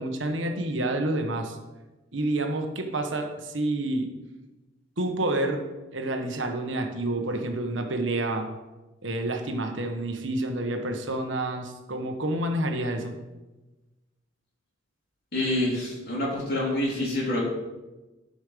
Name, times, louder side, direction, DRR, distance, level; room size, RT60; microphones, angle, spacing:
voice 1, 0.0-1.6 2.1-4.1 5.0-5.6 5.9-8.5 9.0-13.1, right 1 dB, 75° right, 4 dB, 1.3 m, -28 dB
voice 2, 15.3-17.4, left 1 dB, 55° left, -5 dB, 3.8 m, -27 dB
12.0 x 5.4 x 5.1 m, 1.1 s
head